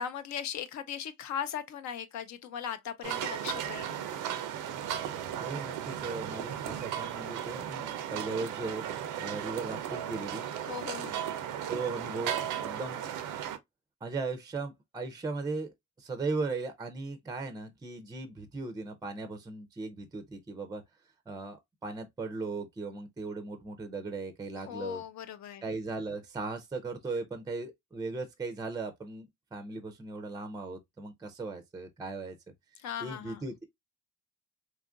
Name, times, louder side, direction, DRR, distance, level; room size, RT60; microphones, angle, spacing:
voice 1, 0.0-4.0 10.7-11.3 24.7-25.6 32.8-33.5, left 9 dB, 65° left, 0.6 m, -38 dB
sound 1, 3.0-13.6, right 10 dB, 85° right, 0.5 m, -36 dB
voice 2, 5.4-8.8 9.2-10.4 11.7-13.0 14.0-20.8 21.3-25.0 25.6-32.4 33.0-33.6, right 3 dB, 15° right, 0.4 m, -37 dB
2.9 x 2.4 x 2.3 m
cardioid pair, 90°, 30 cm